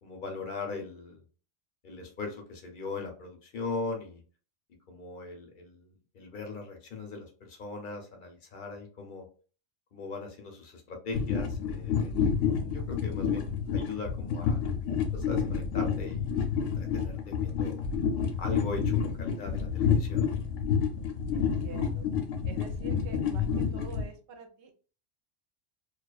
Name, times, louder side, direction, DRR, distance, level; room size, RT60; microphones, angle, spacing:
voice 1, 0.0-1.2 1.8-4.2 4.9-9.3 9.9-12.1 12.4-14.6 15.1-16.3 16.6-17.8 18.4-20.3, left 3 dB, 50° left, 3 dB, 0.7 m, -39 dB
sound 1, 11.1-24.1, left 6 dB, 85° left, 0.9 m, -29 dB
voice 2, 21.3-22.1 22.4-24.8, right 5 dB, 70° right, 6 dB, 0.8 m, -46 dB
2.3 x 2.3 x 2.3 m, 0.38 s
omnidirectional pair, 1.2 m